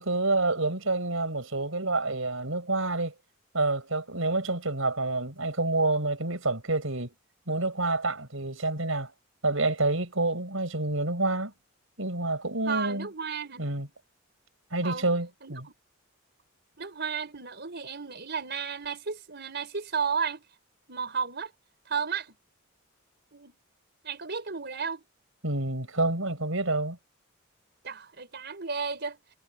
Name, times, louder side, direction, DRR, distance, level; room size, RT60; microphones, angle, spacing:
voice 1, 0.0-3.1 3.5-7.1 7.5-9.1 9.4-11.5 12.0-13.1 13.6-13.9 14.7-15.7 25.4-27.0, right 2 dB, 70° right, 5.6 m, -28 dB
voice 2, 12.7-13.6 14.8-15.1 15.4-15.5 16.8-20.4 20.9-21.5 21.9-22.3 23.3-23.6 24.0-25.0 27.8-29.2, right 6 dB, 50° right, 4.4 m, -33 dB
head